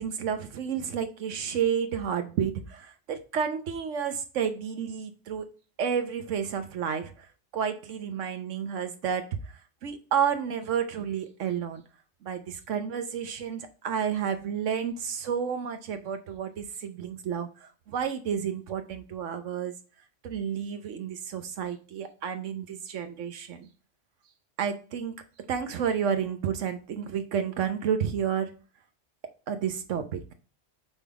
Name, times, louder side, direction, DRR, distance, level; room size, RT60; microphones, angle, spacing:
voice 1, 0.0-5.5 5.8-9.5 9.8-11.8 12.2-19.7 20.2-23.7 24.6-25.2 25.5-28.5 29.5-30.3, right 7 dB, 90° right, 1.2 m, -31 dB
5.5 x 3.7 x 4.7 m
omnidirectional pair, 1.2 m